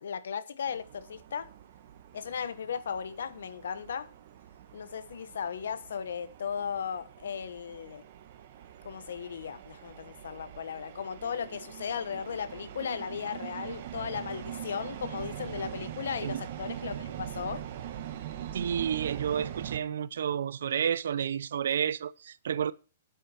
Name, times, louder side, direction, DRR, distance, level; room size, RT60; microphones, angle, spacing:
voice 1, 0.0-1.5 2.1-4.1 4.7-8.0 8.8-17.7, left 7 dB, 85° left, 1.1 m, -36 dB
sound 1, 0.7-19.8, right 11 dB, 45° right, 1.7 m, -43 dB
voice 2, 18.5-22.7, right 8 dB, 75° right, 0.7 m, -30 dB
9.5 x 8.4 x 5.9 m
hypercardioid pair, 170°, 0 cm